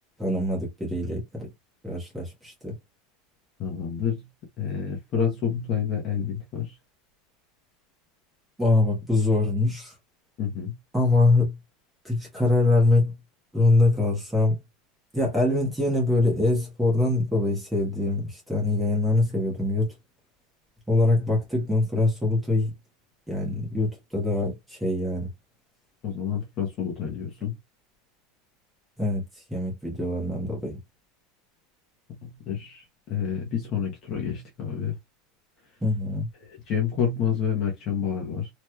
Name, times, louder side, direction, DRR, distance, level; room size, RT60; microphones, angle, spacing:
voice 1, 0.2-1.5 1.8-2.7 8.6-9.9 10.9-11.5 12.0-13.1 13.5-14.6 15.1-19.9 20.9-22.7 23.3-25.3 29.0-29.2 29.5-30.8 35.8-36.3, left 2 dB, 5° right, 1.2 m, -23 dB
voice 2, 3.6-4.2 4.6-6.7 10.4-10.7 26.0-27.6 32.1-35.0 36.5-38.5, left 7 dB, 30° left, 0.8 m, -28 dB
3.3 x 2.9 x 2.2 m
supercardioid pair, 180°, 0 cm